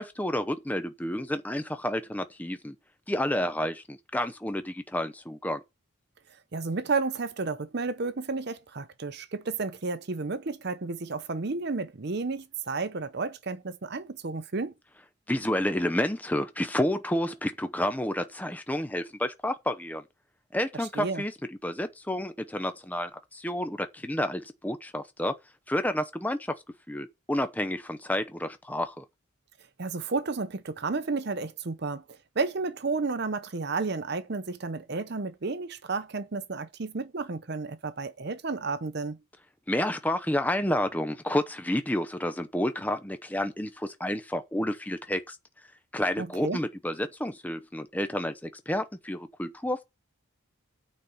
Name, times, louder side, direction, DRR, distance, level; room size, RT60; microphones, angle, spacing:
voice 1, 0.0-2.7 3.1-5.6 15.3-20.0 20.5-21.3 21.6-25.4 25.7-26.5 26.9-29.0 39.7-45.4 45.9-48.3 48.7-49.8, left 1 dB, 5° left, 0.7 m, -30 dB
voice 2, 6.5-14.7 20.8-21.2 29.8-32.0 32.4-39.2 46.2-46.6, right 4 dB, 50° right, 0.7 m, -32 dB
9.2 x 4.3 x 6.5 m
head